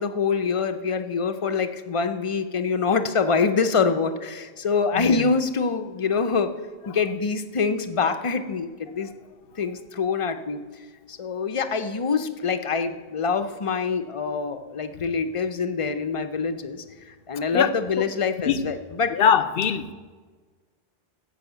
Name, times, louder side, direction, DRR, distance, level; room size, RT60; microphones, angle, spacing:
voice 1, 0.0-6.5 6.9-9.1 9.6-10.6 11.1-16.8 17.3-19.1, left 5 dB, 35° left, 9 dB, 0.6 m, -25 dB
voice 2, 17.5-18.1 18.5-18.6 19.1-19.9, left 7 dB, 65° left, 13 dB, 0.8 m, -22 dB
14.0 x 5.6 x 8.0 m, 1.5 s
omnidirectional pair, 1.1 m